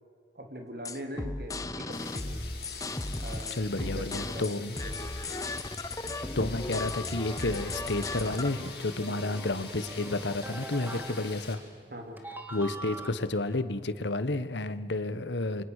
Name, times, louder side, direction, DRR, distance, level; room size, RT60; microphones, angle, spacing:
voice 1, 0.3-2.4 3.2-3.6 3.9-5.4 9.1-9.2 10.9-11.3 11.9-12.2, equal, 55° right, 4 dB, 3.2 m, -42 dB
sound 1, 0.8-8.5, left 2 dB, 20° left, 0.9 m, -36 dB
sound 2, 1.9-11.5, left 5 dB, 60° left, 6.5 m, -45 dB
voice 2, 3.5-4.7 5.2-5.5 6.3-11.6 12.5-15.7, left 2 dB, 85° left, 13 dB, 1.3 m, -31 dB
sound 3, 7.3-11.9 12.2-13.1, right 1 dB, 10° right, 1.9 m, -44 dB
29.0 x 24.5 x 6.6 m, 2.3 s
head